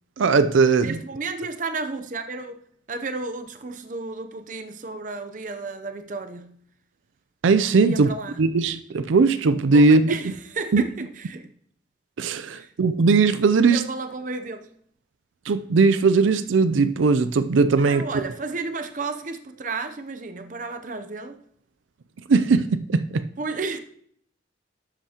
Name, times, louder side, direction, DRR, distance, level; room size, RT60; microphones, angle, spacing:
voice 1, 0.2-1.0 7.4-8.1 8.4-10.2 10.7-10.8 12.2-13.8 15.5-18.0 22.3-23.3, right 4 dB, 85° right, 0.4 m, -19 dB
voice 2, 0.8-2.6 2.9-6.6 7.8-8.4 9.7-11.5 12.5-12.7 13.7-14.7 17.8-21.4 23.4-23.8, right 3 dB, 40° right, 0.6 m, -32 dB
12.0 x 8.2 x 2.9 m
head